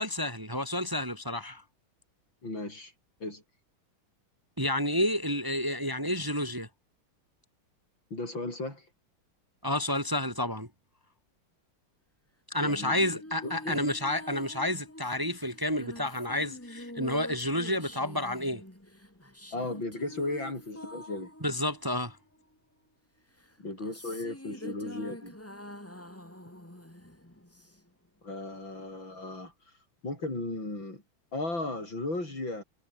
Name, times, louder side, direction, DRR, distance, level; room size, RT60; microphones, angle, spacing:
voice 1, 0.0-1.6 4.6-6.7 9.6-10.7 12.5-18.6 21.4-22.2, left 1 dB, 10° right, 3.1 m, -30 dB
voice 2, 2.4-2.9 3.2-3.4 8.1-8.8 12.6-13.0 13.4-13.8 19.5-21.3 23.6-25.3 28.2-29.5 30.0-31.0 31.3-32.6, left 2 dB, 65° left, 8.7 m, -35 dB
sound 1, 12.6-22.5 23.4-28.1, left 1 dB, 5° left, 3.3 m, -46 dB
omnidirectional pair, 2.3 m